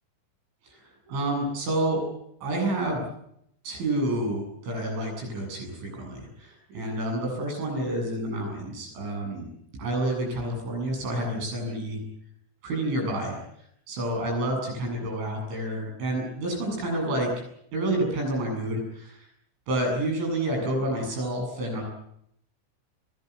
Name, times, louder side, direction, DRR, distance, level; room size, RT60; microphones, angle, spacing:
voice 1, 1.1-2.0 2.4-3.1 3.7-9.5 9.8-12.0 12.6-13.4 13.9-17.3 17.7-19.2 19.7-21.8, right 1 dB, 80° right, 1 dB, 10.5 m, -29 dB
24.5 x 21.0 x 8.4 m, 0.73 s
omnidirectional pair, 5.3 m